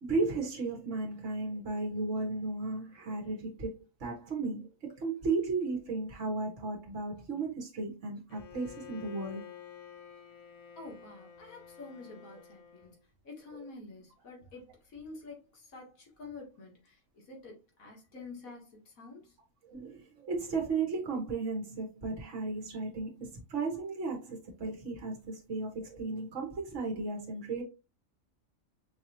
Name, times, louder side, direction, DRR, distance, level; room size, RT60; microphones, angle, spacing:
voice 1, 0.0-3.7 4.0-9.5 13.6-13.7 19.6-27.6, right 3 dB, 60° right, 1.7 m, -35 dB
Bowed string instrument, 8.3-13.0, left 9 dB, 45° left, 0.5 m, -50 dB
voice 2, 10.8-13.0 13.2-19.4, left 3 dB, 90° left, 2.1 m, -48 dB
5.9 x 2.9 x 2.8 m
omnidirectional pair, 1.4 m